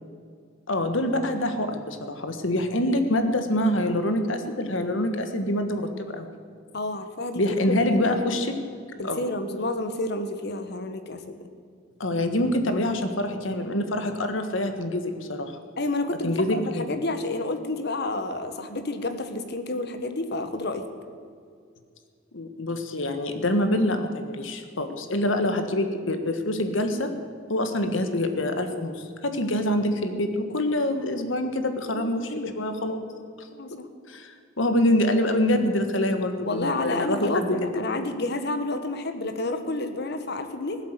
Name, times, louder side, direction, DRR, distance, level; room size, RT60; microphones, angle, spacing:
voice 1, 0.7-6.3 7.3-8.5 9.0-9.2 12.0-15.5 16.2-17.0 22.3-27.1 27.5-33.0 33.4-33.8 34.1-37.7 37.9-38.1, left 1 dB, 70° left, 7 dB, 1.5 m, -26 dB
voice 2, 6.7-7.4 7.7-8.2 9.0-11.4 15.8-20.9 31.9-32.5 33.5-33.9 36.4-40.8, left 2 dB, 55° left, 9 dB, 1.3 m, -30 dB
19.5 x 8.1 x 8.2 m, 2.3 s
head